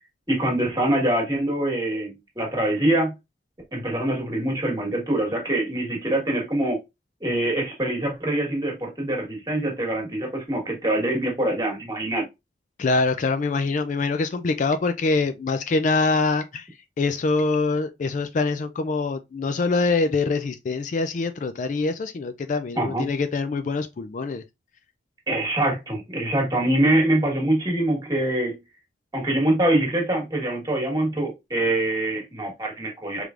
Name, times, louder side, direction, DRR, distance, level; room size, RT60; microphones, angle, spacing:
voice 1, 0.3-3.1 3.7-6.8 7.2-12.2 22.8-23.1 25.3-28.5 29.1-33.2, right 1 dB, 20° right, 1.5 m, -24 dB
voice 2, 12.8-16.7 17.0-24.4, left 3 dB, 45° left, 0.3 m, -24 dB
4.8 x 3.3 x 2.4 m
head